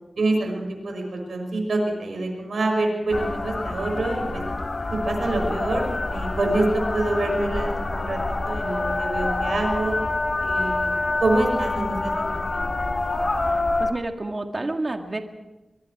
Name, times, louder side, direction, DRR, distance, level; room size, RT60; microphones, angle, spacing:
voice 1, 0.2-4.4 4.9-5.9 6.1-8.2 8.5-10.0 10.4-10.9 11.2-12.7, right 2 dB, 85° right, 2 dB, 6.2 m, -26 dB
sound 1, 3.1-13.9, left 2 dB, 50° left, 1.7 m, -26 dB
voice 2, 13.5-15.2, right 2 dB, 40° right, 4 dB, 1.9 m, -29 dB
23.5 x 23.0 x 4.8 m, 1.1 s
cardioid pair, 50°, 0 cm